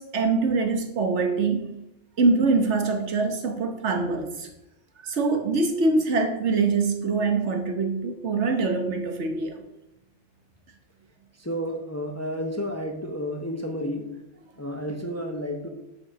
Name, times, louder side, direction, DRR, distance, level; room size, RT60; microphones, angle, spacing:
voice 1, 0.0-1.8 2.2-4.5 5.0-9.6, right 3 dB, 70° right, 5 dB, 1.3 m, -24 dB
voice 2, 11.4-14.1 14.6-15.7, equal, 15° left, 3 dB, 0.7 m, -31 dB
6.6 x 5.1 x 6.2 m, 0.85 s
omnidirectional pair, 1.2 m